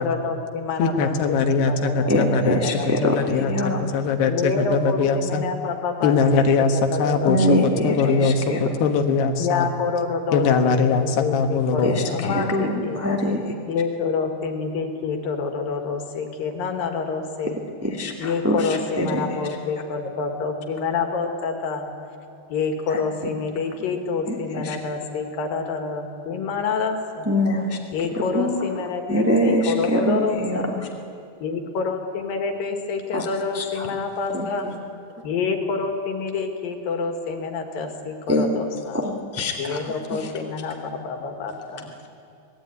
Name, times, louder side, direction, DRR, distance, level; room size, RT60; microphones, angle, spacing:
voice 1, 0.0-1.4 1.7-3.5 4.3-8.6 9.4-13.0 13.7-17.6 18.2-21.9 22.5-27.3 27.9-30.7 31.4-34.7 35.2-39.0 39.6-41.9, left 4 dB, 65° left, 5 dB, 3.7 m, -28 dB
voice 2, 0.8-2.6 3.0-5.5 6.0-9.7 10.3-12.3, left 4 dB, 85° left, 5 dB, 3.6 m, -21 dB
voice 3, 2.1-3.2 3.5-3.8 7.3-8.6 11.8-13.5 17.4-17.5 17.8-19.2 22.9-23.0 24.3-24.8 27.2-27.8 28.3-30.8 33.1-33.2 33.5-33.9 34.3-34.7 38.3-38.5 38.9-39.8 40.1-40.3, equal, 10° right, 1 dB, 0.9 m, -24 dB
25.5 x 19.0 x 9.5 m, 2.7 s
omnidirectional pair, 4.5 m